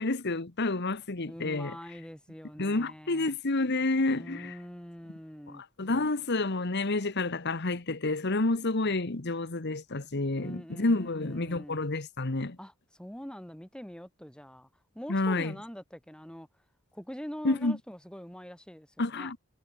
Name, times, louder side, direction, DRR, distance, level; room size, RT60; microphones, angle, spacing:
voice 1, 0.0-1.7 2.6-4.5 5.5-12.6 15.1-15.5 17.4-17.8 19.0-19.4, left 2 dB, 55° left, 1.4 m, -29 dB
voice 2, 1.2-3.3 4.1-5.6 10.4-11.8 12.6-14.7 14.9-16.5 16.9-19.3, equal, 5° left, 3.0 m, -44 dB
head